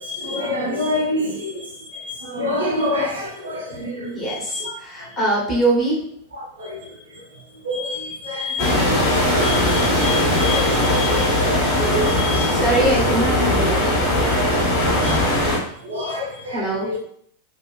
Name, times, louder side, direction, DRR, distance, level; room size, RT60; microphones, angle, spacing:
voice 1, 0.0-1.6 2.0-4.1 4.5-4.7 6.6-6.8 7.6-9.0 9.3-12.5 14.2-15.3 15.8-16.6 16.9-17.0, left 1 dB, 70° right, 0 dB, 0.6 m, -27 dB
voice 2, 4.1-6.0 12.5-13.9 14.2-14.5 16.5-16.9, right 2 dB, 25° left, -3 dB, 1.2 m, -23 dB
sound 1, 8.6-15.6, left 1 dB, 50° left, 1.0 m, -19 dB
2.8 x 2.4 x 2.3 m, 0.65 s
figure-of-eight pair, 90°, 0 cm